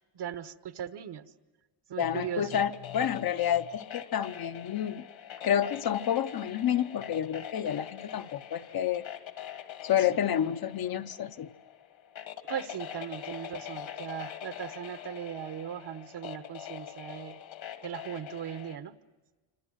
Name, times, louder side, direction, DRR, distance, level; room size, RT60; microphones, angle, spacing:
voice 1, 0.1-1.3 1.9-2.6 12.5-17.4 17.8-18.9, right 9 dB, 55° right, 11 dB, 1.2 m, -38 dB
voice 2, 2.0-5.0 5.4-9.0 9.8-11.5, left 10 dB, 45° left, 10 dB, 0.8 m, -29 dB
sound 1, 2.1-18.8, left 10 dB, 70° left, 2.0 m, -44 dB
27.0 x 26.5 x 6.4 m, 1.2 s
cardioid pair, 170°, 49 cm